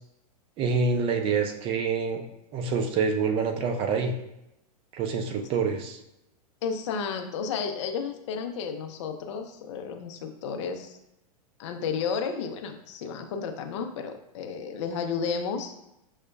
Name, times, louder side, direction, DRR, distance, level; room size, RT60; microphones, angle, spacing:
voice 1, 0.6-2.2 2.5-4.1 4.9-6.0, right 5 dB, 30° right, 5 dB, 0.5 m, -26 dB
voice 2, 6.6-11.0 11.6-15.7, left 6 dB, 50° left, 6 dB, 0.5 m, -32 dB
6.2 x 2.1 x 2.3 m, 0.87 s
figure-of-eight pair, 100°, 20 cm